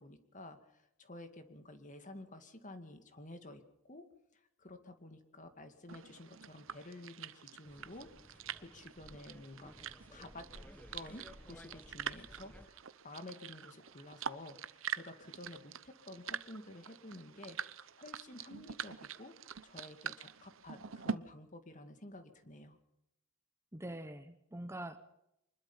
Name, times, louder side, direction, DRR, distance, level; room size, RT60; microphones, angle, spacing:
voice 1, 0.0-4.1 4.6-10.5 10.9-12.8 13.0-19.4 19.6-22.8, left 2 dB, 40° left, 8 dB, 2.3 m, -51 dB
sound 1, 5.9-21.1, right 7 dB, 70° right, 0.9 m, -45 dB
sound 2, 7.6-12.7, equal, 5° left, 1.2 m, -56 dB
voice 2, 23.7-25.0, right 1 dB, 15° right, 9 dB, 1.2 m, -44 dB
25.0 x 20.5 x 5.7 m, 0.81 s
head